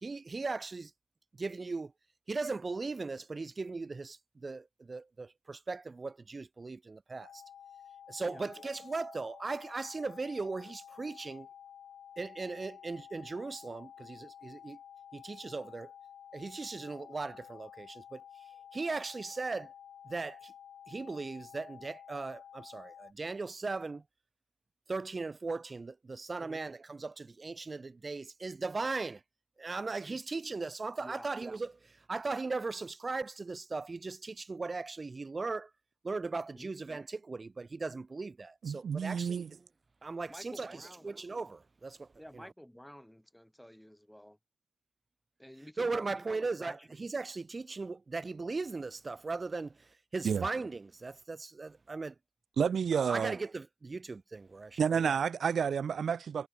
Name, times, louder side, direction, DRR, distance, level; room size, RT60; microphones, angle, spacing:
voice 1, 0.0-0.9 1.4-1.9 2.3-7.4 8.1-11.5 12.2-14.8 15.1-15.9 16.3-19.7 20.0-20.5 20.9-24.0 24.9-29.2 29.6-35.7 36.0-39.5 40.0-42.1 42.3-42.5 45.8-52.1 52.9-55.0, right 3 dB, 30° right, 1.8 m, -38 dB
sound 1, 7.2-23.1, left 9 dB, 65° left, 1.4 m, -52 dB
voice 2, 38.6-39.5 50.2-50.5 52.6-53.4 54.8-56.5, right 7 dB, 55° right, 0.5 m, -30 dB
voice 3, 40.3-41.1 42.2-44.4 45.4-46.9, equal, 5° left, 2.4 m, -51 dB
supercardioid pair, 50°, 0 cm